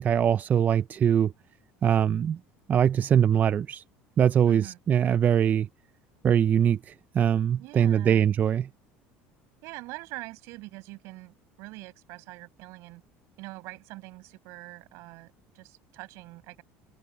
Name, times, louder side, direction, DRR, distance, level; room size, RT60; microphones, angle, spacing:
voice 1, 0.0-1.3 1.8-2.4 2.7-3.8 4.2-5.7 6.2-8.7, right 9 dB, 35° right, 0.5 m, -22 dB
voice 2, 4.5-4.8 7.6-8.3 9.6-13.0 13.4-16.6, right 22 dB, 70° right, 7.8 m, -44 dB
supercardioid pair, 110°, 5 cm